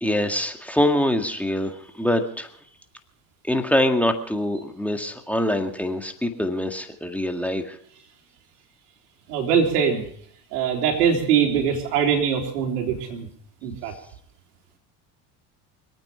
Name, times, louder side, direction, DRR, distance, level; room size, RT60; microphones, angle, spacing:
voice 1, 0.0-2.5 3.5-7.8, left 1 dB, 5° left, 4 dB, 1.9 m, -24 dB
voice 2, 9.3-10.0 10.5-13.3 13.6-13.9, right 7 dB, 90° right, 2 dB, 3.7 m, -22 dB
25.5 x 9.1 x 5.6 m, 0.62 s
supercardioid pair, 90°, 45 cm